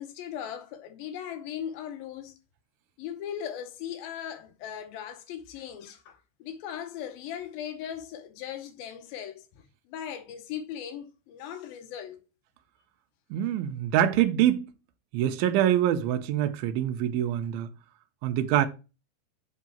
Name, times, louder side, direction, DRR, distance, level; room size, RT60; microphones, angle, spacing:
voice 1, 0.0-2.4 3.0-12.2, left 9 dB, 75° left, 2.7 m, -38 dB
voice 2, 13.3-14.7 15.1-17.7 18.2-18.7, right 11 dB, 80° right, 2.4 m, -25 dB
8.4 x 3.6 x 4.3 m
omnidirectional pair, 4.5 m